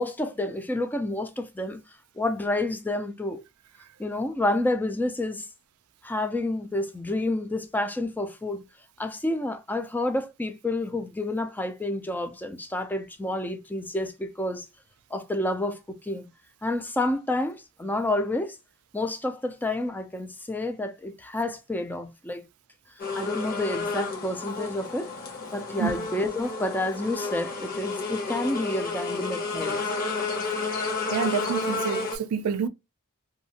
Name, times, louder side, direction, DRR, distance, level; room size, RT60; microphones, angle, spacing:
voice 1, 0.0-1.8 2.2-3.4 4.0-5.5 6.0-8.6 9.0-14.7 15.1-16.3 16.6-18.6 18.9-22.4 23.2-25.1 25.5-29.8, left 1 dB, 10° left, 0.3 m, -29 dB
sound 1, 23.0-32.2, left 3 dB, 40° left, 1.0 m, -31 dB
voice 2, 31.1-32.7, right 7 dB, 80° right, 0.4 m, -28 dB
2.7 x 2.5 x 2.7 m
head